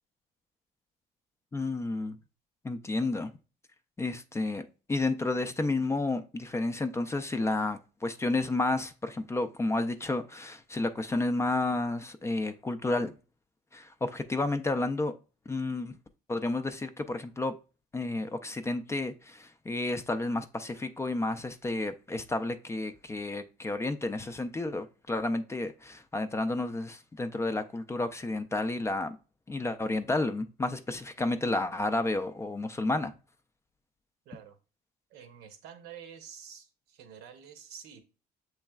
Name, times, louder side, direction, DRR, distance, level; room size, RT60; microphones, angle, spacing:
voice 1, 1.5-2.2 2.6-3.4 4.0-13.1 13.7-15.1 15.5-16.0 16.3-17.6 17.9-29.2 29.5-33.1, left 2 dB, 15° left, 0.3 m, -31 dB
voice 2, 34.2-34.6 35.1-38.0, right 8 dB, 85° right, 0.8 m, -48 dB
7.0 x 3.2 x 2.3 m
cardioid pair, 110°, 17 cm